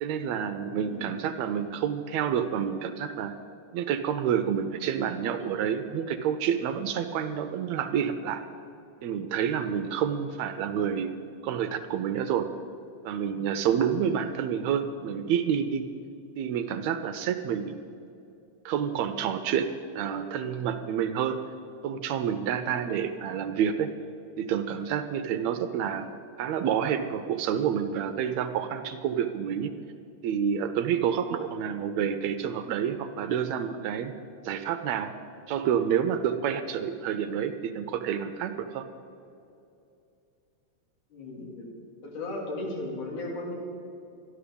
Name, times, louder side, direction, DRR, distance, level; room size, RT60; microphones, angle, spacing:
voice 1, 0.0-3.3 3.7-8.4 9.0-11.1 11.4-12.5 13.1-15.9 16.4-17.8 18.7-19.7 20.0-21.4 21.8-23.9 24.4-26.1 26.4-29.7 30.2-34.1 34.4-35.1 35.5-38.9, right 8 dB, 80° right, 9 dB, 1.7 m, -28 dB
voice 2, 0.7-1.1 41.1-41.7 42.0-43.5, left 2 dB, 85° left, -2 dB, 4.0 m, -36 dB
12.5 x 11.0 x 6.9 m, 2.6 s
omnidirectional pair, 3.5 m